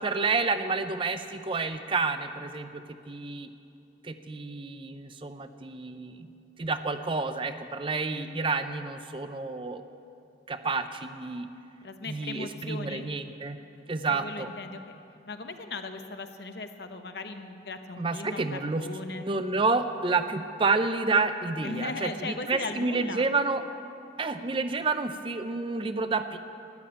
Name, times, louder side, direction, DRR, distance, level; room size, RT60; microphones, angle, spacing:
voice 1, 0.0-3.5 4.0-6.3 6.6-9.8 10.5-11.5 12.1-13.6 13.9-14.5 18.0-18.9 19.2-23.6 24.2-26.4, right 3 dB, 30° right, 9 dB, 0.5 m, -29 dB
voice 2, 11.8-13.1 14.1-14.8 15.3-19.3 21.6-23.3, left 3 dB, 60° left, 7 dB, 0.9 m, -38 dB
13.0 x 10.5 x 8.6 m, 2.7 s
head